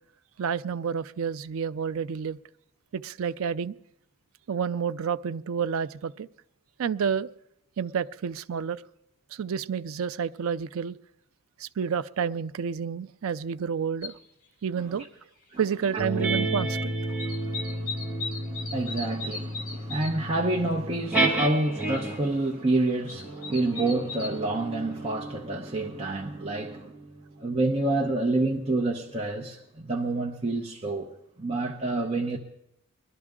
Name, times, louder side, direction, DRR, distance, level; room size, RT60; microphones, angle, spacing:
voice 1, 0.4-2.4 2.9-3.7 4.5-6.3 6.8-7.3 7.8-8.8 9.3-11.0 11.6-14.2 14.6-15.0 15.6-17.0, right 7 dB, 80° right, 0.4 m, -29 dB
sound 1, 14.0-14.1 15.5-15.6 15.9-16.8 17.0-20.3 20.7-20.8 21.0-21.3 21.8-21.9 22.8-24.4 25.0-25.1, left 4 dB, 40° left, 1.5 m, -38 dB
sound 2, 16.0-22.4 23.1-28.0, right 2 dB, 5° right, 1.9 m, -32 dB
voice 2, 17.1-26.9 27.4-31.1 31.4-32.4, right 2 dB, 30° right, 0.8 m, -28 dB
21.0 x 12.0 x 3.7 m
head